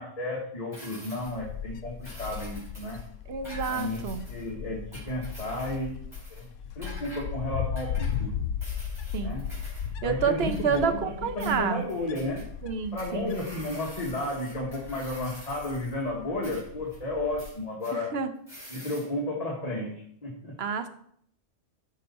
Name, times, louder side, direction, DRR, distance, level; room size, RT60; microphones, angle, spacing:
voice 1, 0.0-3.0 3.7-4.8 5.1-6.0 6.3-6.5 6.7-7.9 8.2-8.4 9.2-9.4 10.0-12.4 12.9-18.1 18.7-19.9 20.2-20.5, left 1 dB, 30° left, -2 dB, 1.5 m, -32 dB
sound 1, 0.7-1.4 2.0-3.0 3.4-4.5 4.9-5.8 6.1-6.5 6.8-7.3 7.8-8.2 8.6-9.9 10.4-11.1 11.4-12.4 13.0-16.0 16.4-17.0 17.4-17.9 18.5-19.1, equal, 25° right, 3.8 m, -47 dB
Wind, 1.2-17.5, left 8 dB, 85° left, 0.9 m, -37 dB
voice 2, 3.3-4.2 9.1-9.4 10.0-11.8 12.6-13.4 17.9-18.3 20.6-20.9, right 6 dB, 60° right, 10 dB, 1.0 m, -29 dB
12.0 x 5.4 x 4.2 m, 0.66 s
omnidirectional pair, 1.2 m